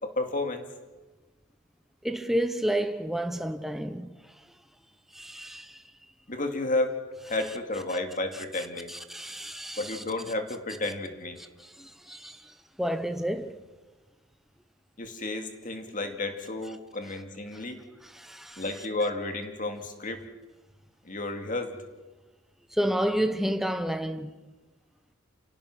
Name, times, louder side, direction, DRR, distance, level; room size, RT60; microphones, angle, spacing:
voice 1, 0.0-0.7 6.3-6.9 7.3-8.9 9.8-11.4 15.0-17.8 18.6-20.2 21.0-21.7, left 2 dB, 40° left, 2.3 m, -32 dB
voice 2, 2.0-4.1 5.1-5.8 7.9-8.0 8.9-10.0 11.6-13.6 17.5-17.6 18.0-18.6 22.7-24.3, equal, ahead, 0.9 m, -30 dB
29.0 x 17.5 x 6.1 m
head